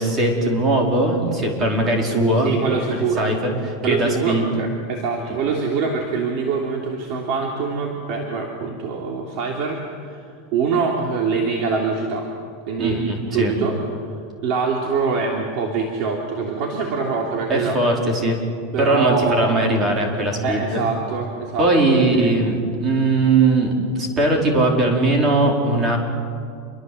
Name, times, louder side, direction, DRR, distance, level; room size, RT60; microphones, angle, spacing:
voice 1, 0.0-2.5 3.2-4.6 5.2-5.3 12.8-13.5 17.5-18.4 18.8-20.8 21.6-26.0, right 2 dB, 25° right, 1 dB, 4.6 m, -20 dB
voice 2, 2.4-3.3 3.8-10.2 10.5-12.3 12.7-13.8 14.4-17.8 18.7-19.5 20.4-22.3, right 5 dB, 45° right, 0 dB, 3.2 m, -24 dB
28.0 x 23.5 x 7.9 m, 2.3 s
supercardioid pair, 165°, 0 cm